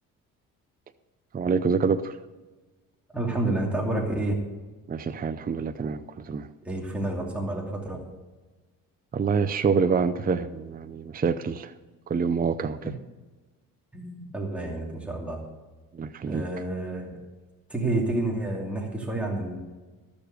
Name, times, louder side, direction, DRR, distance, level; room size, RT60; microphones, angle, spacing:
voice 1, 1.3-2.2 4.9-6.5 9.1-11.7 12.1-12.9 15.9-16.4, right 5 dB, 25° right, 11 dB, 0.6 m, -26 dB
voice 2, 3.1-4.4 6.6-8.0 13.9-15.4 16.3-17.1 17.7-19.6, right 2 dB, 5° right, -2 dB, 2.6 m, -29 dB
13.5 x 6.9 x 6.5 m, 1.2 s
cardioid pair, 90°, 36 cm